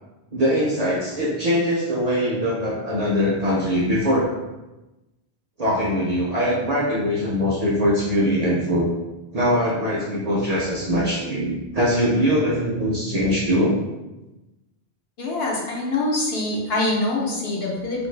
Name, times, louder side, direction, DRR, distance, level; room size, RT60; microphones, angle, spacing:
voice 1, 0.3-4.3 5.6-8.9 9.3-13.8, equal, 50° right, -5 dB, 0.5 m, -22 dB
voice 2, 15.2-18.1, left 2 dB, 70° left, -2 dB, 0.9 m, -24 dB
2.6 x 2.5 x 3.1 m, 1.0 s
omnidirectional pair, 1.1 m